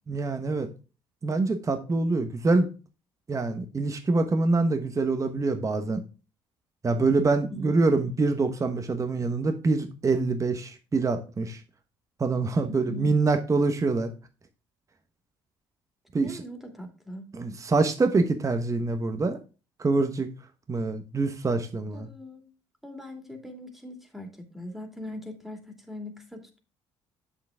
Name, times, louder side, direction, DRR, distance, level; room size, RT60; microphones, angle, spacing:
voice 1, 0.1-0.7 1.2-2.7 3.3-6.0 6.8-11.6 12.2-14.1 16.1-16.4 17.3-19.4 19.8-20.3 20.7-22.1, right 3 dB, 30° right, 7 dB, 1.2 m, -25 dB
voice 2, 7.5-8.1 12.6-13.2 16.2-17.3 21.9-22.5 22.8-26.6, left 2 dB, ahead, 4 dB, 2.5 m, -41 dB
7.5 x 7.1 x 3.6 m, 0.33 s
supercardioid pair, 70°, 11 cm